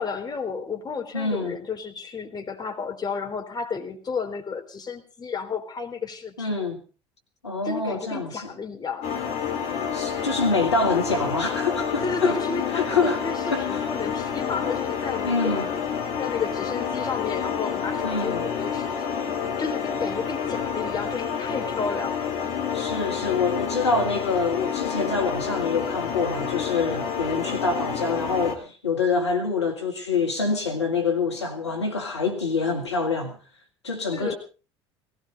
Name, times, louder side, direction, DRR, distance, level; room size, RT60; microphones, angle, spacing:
voice 1, 0.0-6.5 7.6-9.1 12.0-15.8 16.2-19.2 19.6-22.3 34.1-34.3, left 5 dB, 30° left, 3.7 m, -32 dB
voice 2, 1.1-1.5 6.4-6.8 7.4-8.4 9.9-12.4 12.7-13.2 13.5-13.9 15.2-15.7 18.0-18.4 22.7-33.4 33.8-34.3, left 4 dB, 85° left, 1.9 m, -26 dB
sound 1, 9.0-28.6, left 7 dB, 60° left, 3.4 m, -29 dB
19.0 x 16.5 x 4.0 m
figure-of-eight pair, 60°, 14 cm